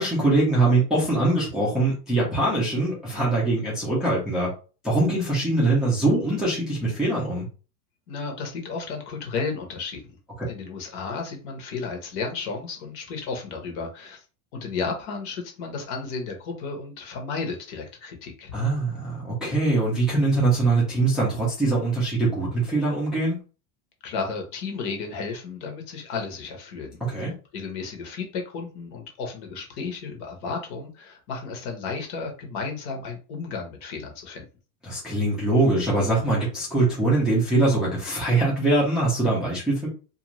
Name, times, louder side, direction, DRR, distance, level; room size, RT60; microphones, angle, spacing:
voice 1, 0.0-4.5 4.8-7.5 18.5-23.4 27.1-27.3 34.8-39.9, right 2 dB, ahead, -7 dB, 0.5 m, -22 dB
voice 2, 8.1-10.0 10.5-14.2 14.5-18.5 24.0-27.0 27.5-34.5, left 4 dB, 50° left, 3 dB, 1.0 m, -33 dB
2.5 x 2.3 x 3.0 m, 0.35 s
supercardioid pair, 160°, 45 cm